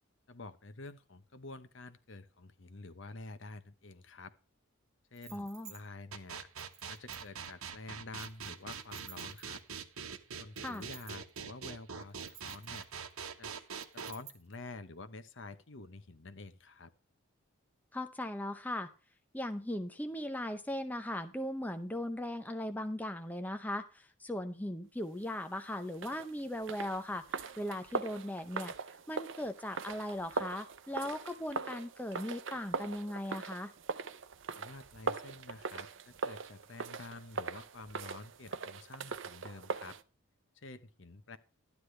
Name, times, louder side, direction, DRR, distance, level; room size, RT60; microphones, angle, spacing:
voice 1, 0.3-4.3 5.1-6.5 6.9-9.6 10.4-12.9 13.4-13.6 13.9-16.9 34.6-40.0 40.5-41.4, left 3 dB, 60° left, 12 dB, 0.9 m, -49 dB
sound 1, 5.1-5.8 6.6-7.5 8.1-9.7 10.6-11.4 12.0-13.1 13.8-14.6, right 8 dB, 30° right, 1.8 m, -54 dB
voice 2, 5.3-5.7 10.6-10.8 17.9-18.9 19.3-28.7 29.1-33.7, left 1 dB, 10° left, 7 dB, 0.6 m, -38 dB
sound 2, 6.1-14.1, right 6 dB, 85° right, 1.0 m, -43 dB
sound 3, 25.9-40.0, right 4 dB, 60° right, 0.6 m, -41 dB
12.0 x 9.5 x 3.3 m, 0.36 s
head